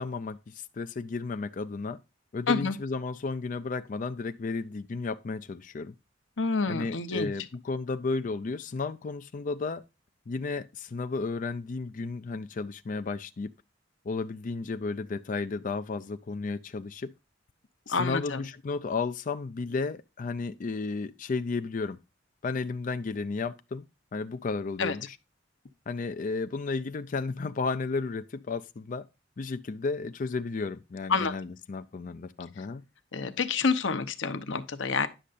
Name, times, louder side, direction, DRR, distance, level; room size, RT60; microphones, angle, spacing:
voice 1, 0.0-2.0 2.3-5.9 6.7-9.8 10.3-13.5 14.1-17.1 17.9-22.0 22.4-23.8 24.1-25.2 25.9-29.0 29.4-32.8, left 4 dB, 45° left, 0.4 m, -33 dB
voice 2, 2.5-2.8 6.4-7.3 17.9-18.4 24.8-25.0 31.1-31.3 33.1-35.1, left 4 dB, 75° left, 0.8 m, -28 dB
9.9 x 6.5 x 2.5 m
head